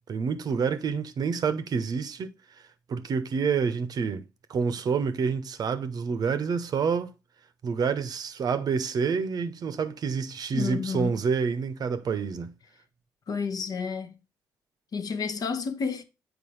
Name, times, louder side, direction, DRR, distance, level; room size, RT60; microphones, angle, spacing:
voice 1, 0.1-2.3 2.9-4.2 4.5-7.1 7.6-12.5, right 5 dB, 50° right, 0.8 m, -28 dB
voice 2, 10.5-11.2 13.3-14.1 14.9-16.0, left 5 dB, 45° left, 0.9 m, -30 dB
7.0 x 4.7 x 3.1 m
hypercardioid pair, 45°, 9 cm